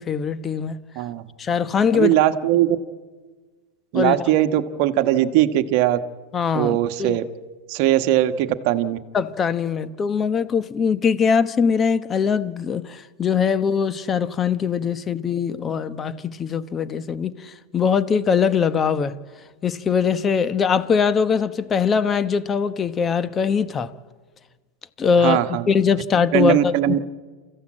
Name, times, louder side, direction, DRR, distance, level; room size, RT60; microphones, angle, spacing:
voice 1, 0.0-0.8 1.4-2.2 3.9-4.2 6.3-7.2 9.1-19.2 19.6-23.9 25.0-27.0, left 6 dB, 25° left, 1.0 m, -22 dB
voice 2, 1.9-2.8 3.9-6.0 6.5-7.2 7.7-9.0 25.2-25.6 26.3-27.0, right 13 dB, 55° right, 1.2 m, -20 dB
28.0 x 14.5 x 8.8 m
hypercardioid pair, 115°, 0 cm